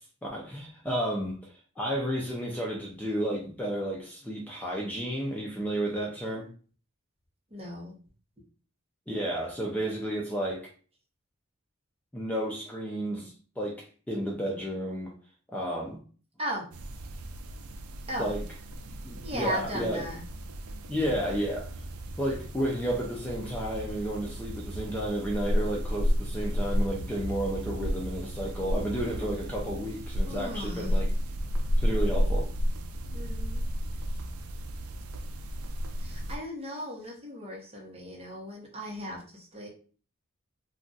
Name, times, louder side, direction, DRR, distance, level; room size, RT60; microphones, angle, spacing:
voice 1, 0.2-6.5 9.1-10.7 12.1-15.1 15.5-16.0 18.2-18.4 19.0-20.0 20.9-21.7 22.2-31.0 31.8-32.5, right 1 dB, 5° left, -3 dB, 0.4 m, -32 dB
voice 2, 7.5-8.0 16.4-16.7 18.1-18.4 19.2-20.2 28.6-29.3 30.3-31.0 33.1-33.7 36.0-39.7, equal, 30° right, -1 dB, 0.9 m, -37 dB
sound 1, 16.7-36.4, equal, 85° right, 0.4 m, -32 dB
2.5 x 2.3 x 3.8 m, 0.40 s
head